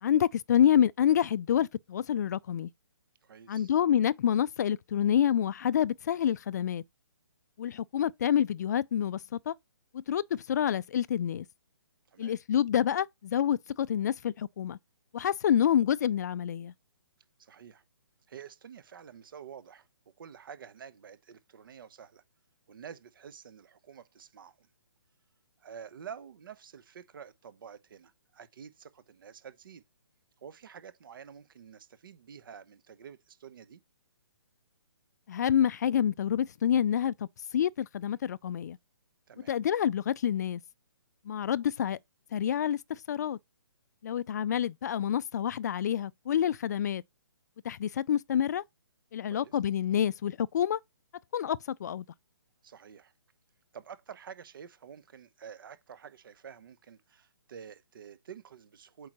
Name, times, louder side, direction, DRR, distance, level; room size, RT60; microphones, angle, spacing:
voice 1, 0.0-2.7 3.5-6.8 7.6-9.5 9.9-11.5 12.2-14.8 15.1-16.7 35.3-37.3 37.5-38.8 39.5-40.6 41.3-42.0 42.3-43.4 44.0-47.0 47.6-48.6 49.1-50.8 51.3-52.0, left 9 dB, 45° left, 0.3 m, -27 dB
voice 2, 3.2-3.7 12.1-12.4 17.4-17.8 18.3-19.9 20.2-22.2 22.7-24.7 25.6-29.8 30.4-33.8 39.3-39.5 49.3-49.6 52.6-53.1 53.7-59.1, right 7 dB, 55° right, 0.9 m, -49 dB
8.4 x 4.7 x 3.0 m
hypercardioid pair, 145°, 13 cm